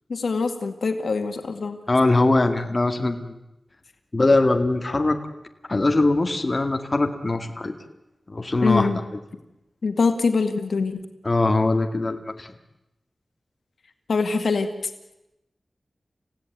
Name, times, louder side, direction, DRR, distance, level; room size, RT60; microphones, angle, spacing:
voice 1, 0.1-1.8 8.6-9.0 9.8-11.0 14.1-14.7, left 4 dB, 80° left, 7 dB, 2.1 m, -23 dB
voice 2, 1.9-3.4 4.1-5.2 5.7-7.7 8.3-8.9 11.2-12.5, left 2 dB, 35° left, 5 dB, 2.1 m, -21 dB
28.5 x 16.5 x 9.2 m, 0.93 s
wide cardioid pair, 100°, 0 cm